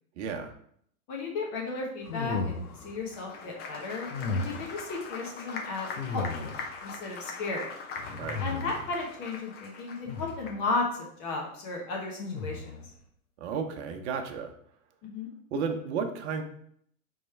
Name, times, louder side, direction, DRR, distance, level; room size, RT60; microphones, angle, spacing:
voice 1, 0.2-0.5 8.2-8.4 13.4-14.5 15.5-16.4, right 5 dB, 50° right, 5 dB, 0.8 m, -33 dB
voice 2, 1.1-6.5 6.8-7.7 8.4-12.7 15.0-15.3, left 3 dB, 40° left, -1 dB, 1.1 m, -34 dB
sound 1, 2.0-3.0 4.1-4.8 6.0-6.8 8.0-9.0 10.0-10.6 12.2-12.9, left 3 dB, 90° left, 0.8 m, -35 dB
Applause, 3.0-10.8, left 4 dB, 25° left, 0.5 m, -41 dB
3.7 x 3.1 x 4.3 m, 0.66 s
hypercardioid pair, 120°, 43 cm